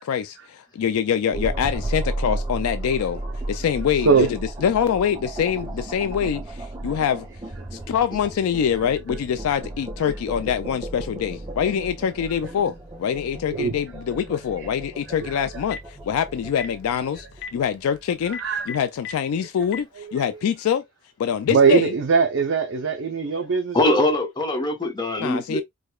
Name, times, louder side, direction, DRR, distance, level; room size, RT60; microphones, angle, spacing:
voice 1, 0.0-3.2 3.5-4.3 4.6-7.3 7.7-18.4 18.7-20.8 21.2-21.9 25.2-25.6, left 8 dB, 80° left, 0.3 m, -24 dB
sound 1, 1.3-18.6, right 1 dB, 15° right, 0.6 m, -34 dB
Telephone, 15.5-15.9 16.5-16.7 17.3-17.5 18.2-19.1 19.6-19.8, left 7 dB, 50° left, 0.7 m, -34 dB
voice 2, 18.3-18.7 20.0-20.1 21.5-24.0, right 5 dB, 60° right, 0.5 m, -21 dB
voice 3, 23.7-25.6, left 1 dB, 20° left, 1.0 m, -22 dB
4.7 x 2.2 x 2.3 m
head